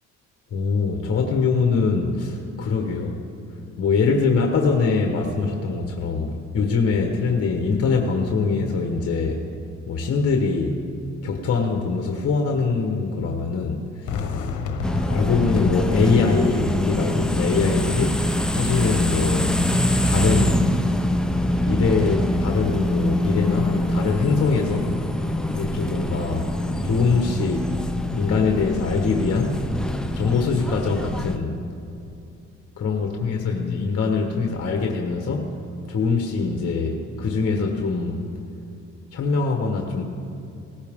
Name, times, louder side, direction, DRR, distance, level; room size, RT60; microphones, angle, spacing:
voice 1, 0.5-3.2 3.8-9.4 9.9-10.8 11.2-14.5 15.0-19.6 20.0-20.7 21.6-24.9 25.5-26.5 26.8-27.7 28.1-29.8 30.1-31.6 32.8-35.5 35.9-38.2 39.1-40.0, left 4 dB, 50° left, 2 dB, 1.4 m, -23 dB
Fireworks, 14.1-19.1, left 5 dB, 75° left, 1.2 m, -33 dB
sound 1, 14.8-31.4, left 1 dB, ahead, 0.7 m, -24 dB
18.0 x 15.0 x 3.7 m, 2.6 s
cardioid pair, 90°, 30 cm